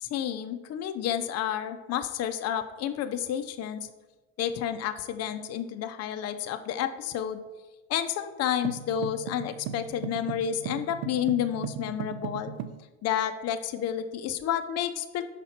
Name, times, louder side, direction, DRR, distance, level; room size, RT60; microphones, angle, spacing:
voice 1, 0.0-3.9 4.4-7.4 7.9-12.5 13.0-15.2, left 9 dB, 40° left, 8 dB, 0.5 m, -30 dB
sound 1, 8.6-12.8, right 8 dB, 80° right, 0.5 m, -37 dB
5.6 x 4.1 x 4.2 m, 1.1 s
supercardioid pair, 100°, 39 cm